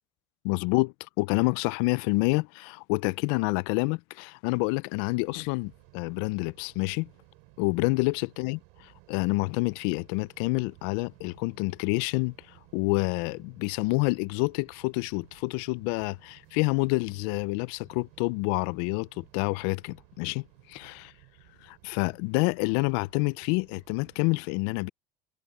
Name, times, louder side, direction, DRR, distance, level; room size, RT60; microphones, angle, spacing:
voice 1, 0.4-7.1 7.6-12.3 12.7-21.1 21.6-24.9, left 26 dB, 65° left, 0.4 m, -28 dB
sound 1, 5.2-24.4, right 29 dB, 70° right, 5.2 m, -57 dB
cardioid pair, 170°, 13 cm